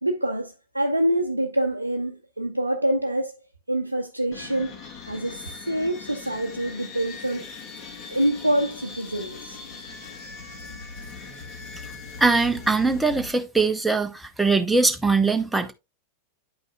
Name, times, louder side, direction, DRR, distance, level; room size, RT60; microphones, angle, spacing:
voice 1, 0.0-3.3 3.7-4.7 5.1-7.5 8.1-9.6, right 1 dB, 85° right, 0.6 m, -26 dB
sound 1, 4.3-13.3, left 5 dB, 35° left, 1.8 m, -40 dB
sound 2, 7.2-13.6, left 1 dB, 90° left, 2.6 m, -53 dB
voice 2, 12.2-15.7, right 3 dB, 5° right, 0.9 m, -21 dB
9.8 x 5.4 x 2.4 m
figure-of-eight pair, 90°, 0 cm